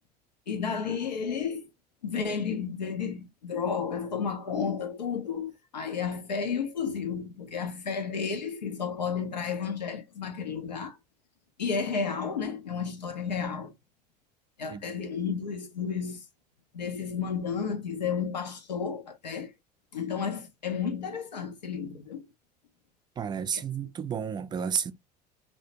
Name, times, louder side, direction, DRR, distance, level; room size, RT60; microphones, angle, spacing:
voice 1, 0.5-1.6 2.0-11.0 11.6-13.7 14.6-16.2 16.7-19.5 19.9-22.3 23.5-23.6, left 6 dB, 85° left, 0.4 m, -32 dB
voice 2, 23.2-24.9, right 7 dB, 20° right, 0.3 m, -31 dB
2.4 x 2.1 x 2.7 m
figure-of-eight pair, 65°, 21 cm